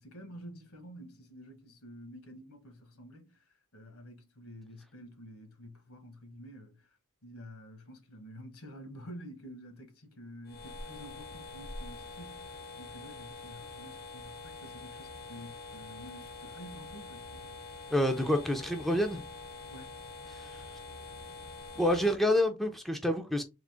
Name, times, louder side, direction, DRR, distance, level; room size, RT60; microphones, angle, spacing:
voice 1, 0.0-3.4 3.7-6.9 7.2-12.5 12.8-17.5 19.7-19.9, equal, 70° left, 1.3 m, -49 dB
sound 1, 10.4-22.2, left 3 dB, 45° left, 0.6 m, -45 dB
voice 2, 17.9-19.2 20.3-20.6 21.8-23.4, left 1 dB, ahead, 0.5 m, -28 dB
3.8 x 2.8 x 3.5 m
head